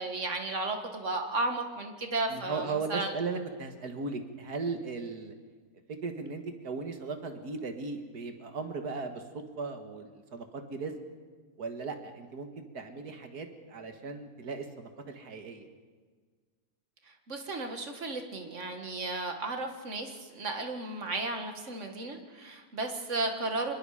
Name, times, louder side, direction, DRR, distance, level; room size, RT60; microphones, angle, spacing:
voice 1, 0.0-3.1 17.1-23.7, right 2 dB, 50° right, 5 dB, 2.1 m, -34 dB
voice 2, 2.3-5.3 5.9-9.2 9.6-11.0 11.6-15.7, right 4 dB, 80° right, 6 dB, 2.2 m, -37 dB
25.5 x 21.5 x 5.0 m, 1.5 s
omnidirectional pair, 1.7 m